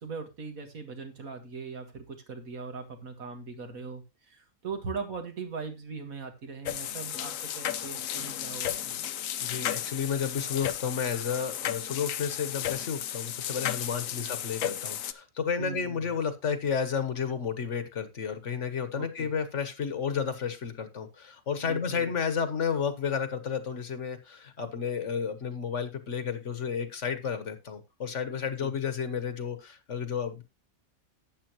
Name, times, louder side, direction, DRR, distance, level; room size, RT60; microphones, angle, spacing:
voice 1, 0.0-9.0 14.1-14.3 15.6-16.0 19.0-19.3 21.6-22.1 28.6-28.7, right 5 dB, 80° right, 2.3 m, -40 dB
sound 1, 6.7-15.1, left 10 dB, 75° left, 1.1 m, -34 dB
voice 2, 9.4-30.4, left 7 dB, 60° left, 1.5 m, -32 dB
12.0 x 8.5 x 3.0 m
omnidirectional pair, 1.4 m